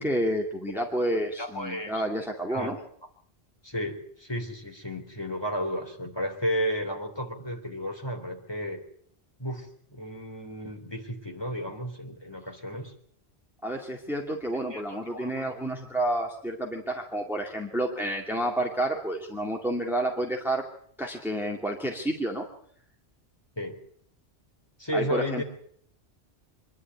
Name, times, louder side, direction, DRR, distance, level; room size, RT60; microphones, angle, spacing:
voice 1, 0.0-2.8 13.6-20.6 21.0-22.5 24.9-25.4, right 1 dB, ahead, 0 dB, 2.2 m, -30 dB
voice 2, 1.4-2.0 2.5-2.8 3.6-8.8 9.4-12.9 14.7-15.5 23.6-23.8 24.8-25.4, equal, 20° left, 2 dB, 3.5 m, -33 dB
25.0 x 11.5 x 9.6 m, 0.63 s
omnidirectional pair, 1.2 m